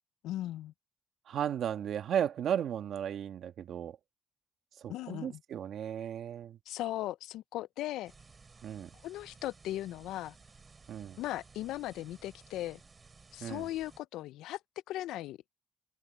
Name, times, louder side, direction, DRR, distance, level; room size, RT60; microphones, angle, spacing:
voice 1, 0.2-0.7 4.9-5.4 6.7-8.1 9.0-10.3 11.2-12.8 13.3-14.6 14.9-15.4, left 14 dB, 90° left, 0.4 m, -38 dB
voice 2, 1.3-4.0 4.8-6.6 8.6-8.9 10.9-11.2 13.4-13.7, right 9 dB, 70° right, 1.5 m, -35 dB
sound 1, 8.1-14.0, right 4 dB, 30° right, 4.7 m, -57 dB
cardioid pair, 90°, 0 cm